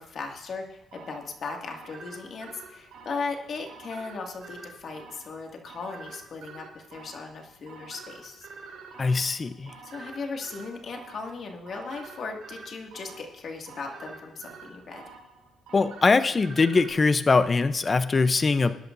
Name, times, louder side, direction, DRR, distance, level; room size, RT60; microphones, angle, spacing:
voice 1, 0.0-8.5 9.8-15.0, left 4 dB, 55° left, 2 dB, 2.2 m, -37 dB
sound 1, 0.9-16.9, right 4 dB, 85° right, 3.1 m, -47 dB
voice 2, 9.0-9.7 15.7-18.8, left 4 dB, 30° left, 12 dB, 0.7 m, -22 dB
20.0 x 11.0 x 2.7 m, 0.92 s
cardioid pair, 90°, 0 cm